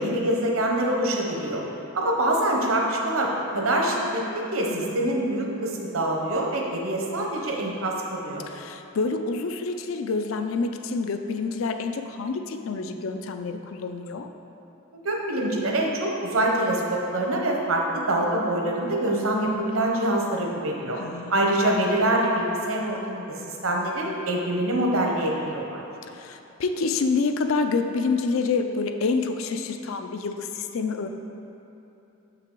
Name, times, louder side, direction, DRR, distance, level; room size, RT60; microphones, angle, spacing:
voice 1, 0.0-1.6 1.9-8.4 14.9-21.0 21.3-25.8, right 1 dB, 75° right, 0 dB, 0.9 m, -25 dB
voice 2, 8.5-14.3 20.9-21.4 26.1-31.1, left 4 dB, 70° left, 7 dB, 0.4 m, -28 dB
6.6 x 5.7 x 3.8 m, 2.9 s
head